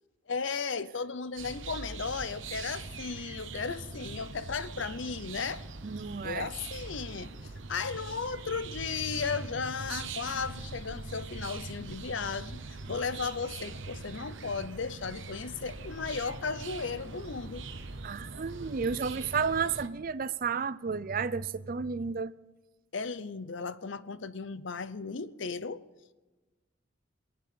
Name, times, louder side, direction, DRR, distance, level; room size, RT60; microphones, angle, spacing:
voice 1, 0.3-5.6 6.2-17.6 22.9-25.8, left 5 dB, 70° left, 0.7 m, -35 dB
sound 1, 1.4-19.9, right 3 dB, 75° right, 1.1 m, -42 dB
voice 2, 5.8-6.5 18.0-22.3, right 5 dB, 45° right, 0.5 m, -32 dB
23.0 x 8.9 x 6.9 m
head